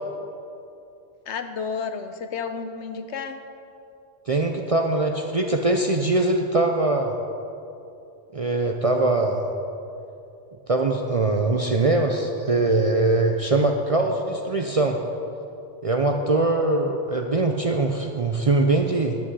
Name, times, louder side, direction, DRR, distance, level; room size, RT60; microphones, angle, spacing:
voice 1, 1.3-3.4, left 5 dB, 70° left, 8 dB, 1.0 m, -31 dB
voice 2, 4.3-7.1 8.3-9.5 10.7-15.0 15.8-19.2, right 2 dB, 40° right, 3 dB, 0.5 m, -22 dB
10.5 x 8.7 x 5.5 m, 2.7 s
omnidirectional pair, 1.2 m